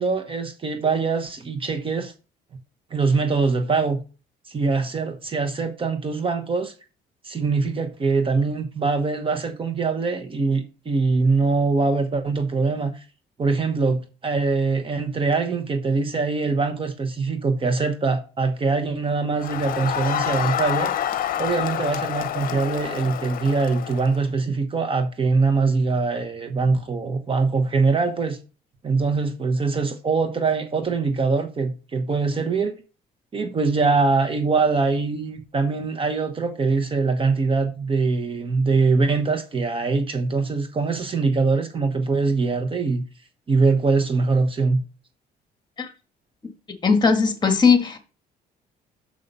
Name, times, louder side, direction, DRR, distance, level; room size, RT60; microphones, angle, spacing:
voice 1, 0.0-2.1 2.9-4.0 4.5-6.7 7.2-13.0 13.4-20.9 21.4-28.4 28.8-32.7 33.3-43.0 43.5-44.8, right 4 dB, 30° right, 1.1 m, -23 dB
Crowd, 19.4-24.2, left 10 dB, 55° left, 0.8 m, -28 dB
voice 2, 46.8-48.0, left 5 dB, 25° left, 1.6 m, -18 dB
6.6 x 5.5 x 5.4 m
cardioid pair, 110°, 17 cm